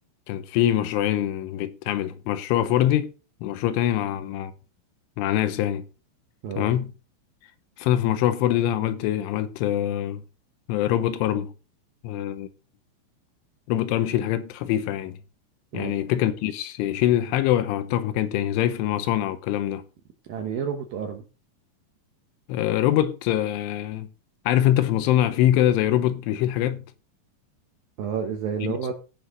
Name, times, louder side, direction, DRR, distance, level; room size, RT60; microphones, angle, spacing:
voice 1, 0.3-3.1 3.4-4.5 5.2-5.8 6.6-6.9 7.8-10.2 10.7-11.5 12.0-12.5 13.7-15.2 15.7-19.8 22.5-24.1 24.5-26.8 28.6-28.9, left 12 dB, 80° left, 3.2 m, -24 dB
voice 2, 6.4-6.8 15.7-16.0 20.2-21.3 28.0-28.9, right 7 dB, 70° right, 2.2 m, -30 dB
17.0 x 6.5 x 3.9 m
omnidirectional pair, 5.6 m